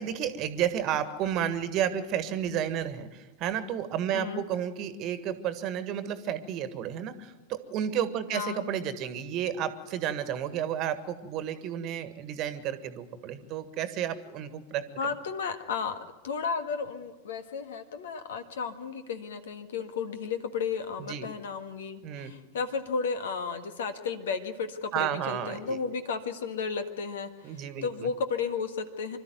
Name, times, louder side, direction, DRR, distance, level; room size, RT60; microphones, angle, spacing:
voice 1, 0.0-14.8 21.1-21.3 22.0-22.3 24.9-25.8 27.4-28.1, right 9 dB, 35° right, 12 dB, 1.6 m, -32 dB
voice 2, 4.1-4.4 8.3-8.6 15.0-16.0 16.2-29.2, left 5 dB, 60° left, 10 dB, 1.6 m, -33 dB
26.0 x 13.0 x 9.3 m, 1.2 s
figure-of-eight pair, 90°, 0 cm